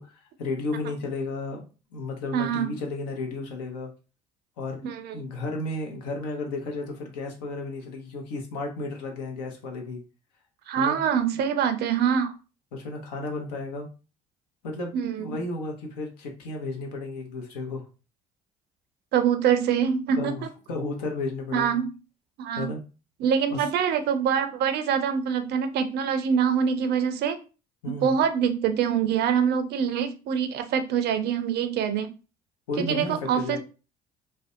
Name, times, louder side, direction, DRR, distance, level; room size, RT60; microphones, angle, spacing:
voice 1, 0.0-3.9 4.6-10.0 10.7-11.0 12.7-13.9 14.6-17.8 20.2-21.8 22.5-22.8 23.5-23.7 27.8-28.2 32.7-33.6, left 3 dB, 75° left, 2 dB, 0.7 m, -33 dB
voice 2, 2.3-2.8 4.8-5.2 10.7-12.3 14.9-15.4 19.1-20.5 21.5-21.9 22.4-22.7 23.2-27.4 28.0-32.1 32.8-33.6, right 7 dB, 55° right, 9 dB, 0.4 m, -25 dB
2.5 x 2.1 x 2.5 m, 0.33 s
hypercardioid pair, 55°, 21 cm